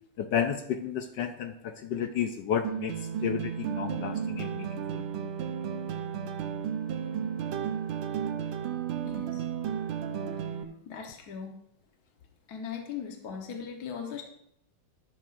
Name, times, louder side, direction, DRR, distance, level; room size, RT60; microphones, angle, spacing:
voice 1, 0.2-3.0 3.2-5.0, left 8 dB, 70° left, 7 dB, 1.1 m, -32 dB
sound 1, 2.6-10.6, right 8 dB, 80° right, 1.6 m, -33 dB
voice 2, 9.0-9.5 10.9-11.5 12.5-14.2, left 7 dB, 55° left, 2 dB, 1.5 m, -39 dB
12.0 x 11.5 x 2.5 m, 0.75 s
omnidirectional pair, 2.3 m